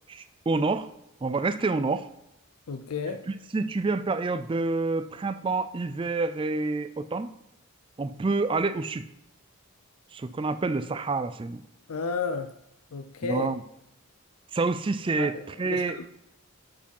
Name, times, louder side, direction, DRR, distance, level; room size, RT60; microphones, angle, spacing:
voice 1, 0.1-0.9 1.2-2.0 3.3-7.3 8.0-9.1 10.1-11.6 13.2-13.6 14.5-16.0, right 3 dB, 20° right, 11 dB, 0.3 m, -28 dB
voice 2, 2.7-3.2 11.9-12.5 12.9-13.5 15.2-15.3 15.6-16.1, left 5 dB, 80° left, 8 dB, 0.5 m, -32 dB
9.2 x 4.8 x 5.4 m, 0.82 s
head